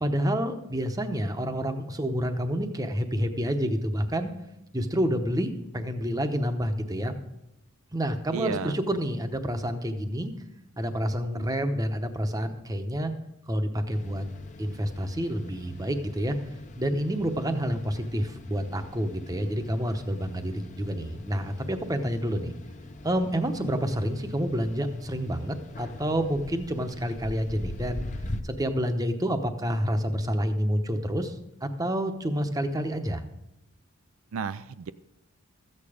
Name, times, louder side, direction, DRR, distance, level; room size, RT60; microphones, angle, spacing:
voice 1, 0.0-4.3 4.7-7.1 7.9-10.3 10.8-13.1 13.5-14.2 14.6-16.4 16.8-22.5 23.0-28.1 28.4-33.2, equal, 15° right, 7 dB, 0.8 m, -28 dB
voice 2, 8.3-8.8 34.3-34.9, right 6 dB, 70° right, 13 dB, 0.4 m, -32 dB
sound 1, 13.9-28.4, left 1 dB, 35° left, 0.7 m, -42 dB
14.0 x 8.8 x 4.9 m, 0.89 s
head